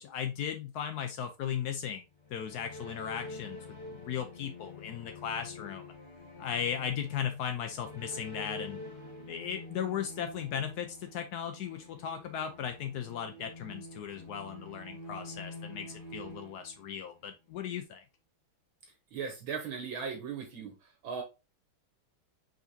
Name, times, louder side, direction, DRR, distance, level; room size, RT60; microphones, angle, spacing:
voice 1, 0.0-2.0 2.3-3.6 3.9-5.8 6.4-8.8 9.3-18.0, left 8 dB, 85° left, 7 dB, 0.8 m, -37 dB
sound 1, 2.1-17.3, left 2 dB, 40° left, 1.3 m, -47 dB
voice 2, 19.1-20.7 21.0-21.2, right 6 dB, 70° right, 3 dB, 1.6 m, -37 dB
5.0 x 3.9 x 2.6 m, 0.26 s
omnidirectional pair, 2.3 m